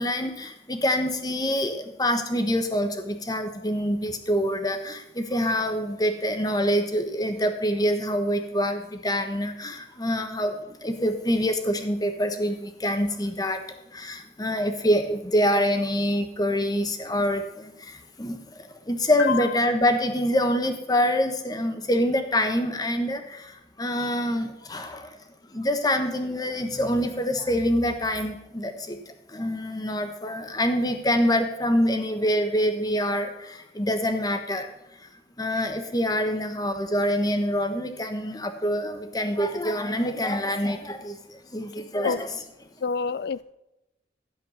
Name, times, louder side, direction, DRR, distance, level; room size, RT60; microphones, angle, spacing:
voice 1, 0.0-10.6 10.8-13.6 13.9-17.7 18.2-18.4 18.9-23.4 23.8-25.1 25.5-29.0 29.3-34.7 35.4-41.1 41.5-42.3, equal, 20° left, 7 dB, 1.2 m, -25 dB
voice 2, 19.2-19.7 42.0-42.2 42.8-43.4, left 5 dB, 60° left, 19 dB, 0.4 m, -28 dB
15.5 x 5.9 x 5.5 m, 0.91 s
head